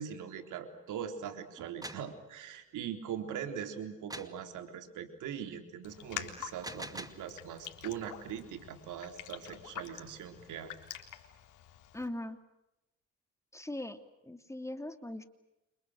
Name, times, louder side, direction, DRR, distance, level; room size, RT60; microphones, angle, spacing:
voice 1, 0.0-10.7, right 8 dB, 85° right, 7 dB, 3.8 m, -41 dB
sound 1, 1.6-2.1 4.1-4.4 6.4-7.3, right 1 dB, 10° right, 2.3 m, -44 dB
Raindrop, 5.8-12.1, left 12 dB, 85° left, 3.7 m, -47 dB
voice 2, 11.9-12.4 13.5-14.0 14.3-15.2, left 1 dB, 10° left, 8 dB, 2.8 m, -40 dB
29.5 x 27.0 x 6.5 m, 0.90 s
cardioid pair, 90°, 30 cm